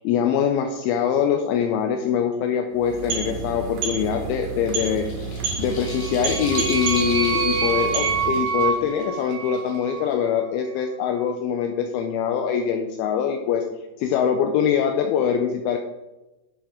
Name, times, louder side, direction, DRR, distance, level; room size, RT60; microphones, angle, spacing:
voice 1, 0.0-13.6 14.0-15.8, left 8 dB, 80° left, 4 dB, 2.4 m, -23 dB
sound 1, 2.7-8.5, right 4 dB, 80° right, 3.6 m, -30 dB
sound 2, 4.3-10.1, left 2 dB, 60° left, 3.1 m, -38 dB
sound 3, 5.7-10.1, right 5 dB, 45° right, 2.6 m, -26 dB
11.5 x 6.2 x 3.7 m, 1.0 s
omnidirectional pair, 4.5 m